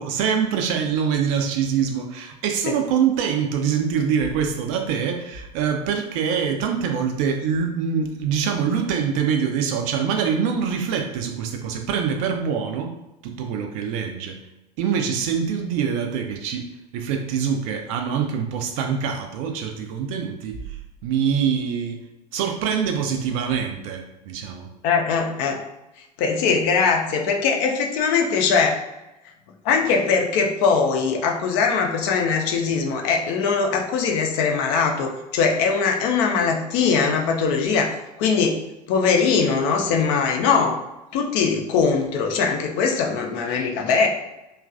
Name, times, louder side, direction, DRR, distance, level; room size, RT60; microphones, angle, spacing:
voice 1, 0.0-12.9 13.2-14.4 14.8-16.7 16.9-22.0 22.3-24.7, right 7 dB, 50° right, 4 dB, 0.5 m, -24 dB
voice 2, 24.8-25.6 26.2-28.8 29.6-38.6 38.9-40.8 41.1-44.1, left 5 dB, 50° left, 2 dB, 0.6 m, -21 dB
3.0 x 2.3 x 2.4 m, 0.97 s
figure-of-eight pair, 75°, 21 cm